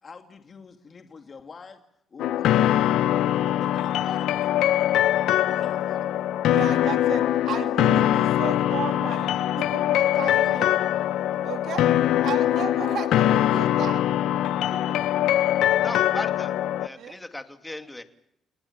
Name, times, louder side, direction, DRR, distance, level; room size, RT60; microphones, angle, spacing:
voice 1, 0.0-1.8 2.1-4.5 5.5-6.1 7.6-7.7 9.9-10.8, left 5 dB, 40° left, 5 dB, 2.5 m, -45 dB
sound 1, 2.2-16.9, left 12 dB, 85° left, 0.9 m, -22 dB
voice 2, 6.5-10.7 11.4-11.9 12.2-14.0 14.7-15.0 17.0-17.2, right 9 dB, 75° right, 6 dB, 2.5 m, -34 dB
voice 3, 15.8-16.5 16.8-18.0, left 1 dB, 10° left, 7 dB, 2.6 m, -36 dB
29.0 x 19.5 x 7.5 m, 0.76 s
cardioid pair, 90°, 0 cm